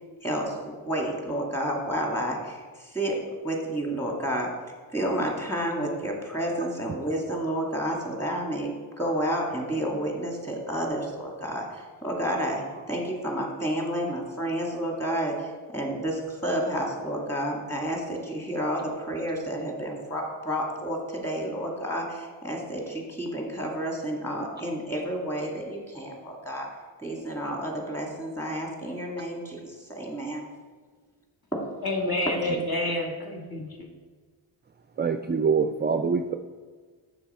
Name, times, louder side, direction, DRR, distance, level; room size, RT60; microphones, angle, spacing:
voice 1, 0.2-4.5 4.9-26.7 27.0-30.5, right 1 dB, 5° left, 0 dB, 2.1 m, -30 dB
voice 2, 31.8-33.9, left 1 dB, 50° left, 1 dB, 1.6 m, -29 dB
voice 3, 35.0-36.3, right 5 dB, 25° right, 8 dB, 0.3 m, -24 dB
6.9 x 6.2 x 4.3 m, 1.5 s
cardioid pair, 55°, 48 cm